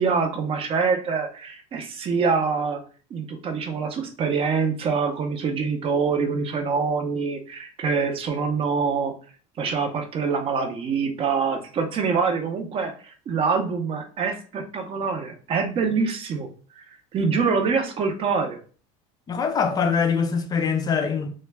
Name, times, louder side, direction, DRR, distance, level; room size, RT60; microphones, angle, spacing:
voice 1, 0.0-2.8 3.1-9.1 9.6-16.5 16.8-16.9 17.1-18.6, right 5 dB, 35° right, 0.5 m, -25 dB
voice 2, 19.3-21.3, left 6 dB, 25° left, 0.4 m, -23 dB
2.2 x 2.1 x 3.2 m
supercardioid pair, 130°, 17 cm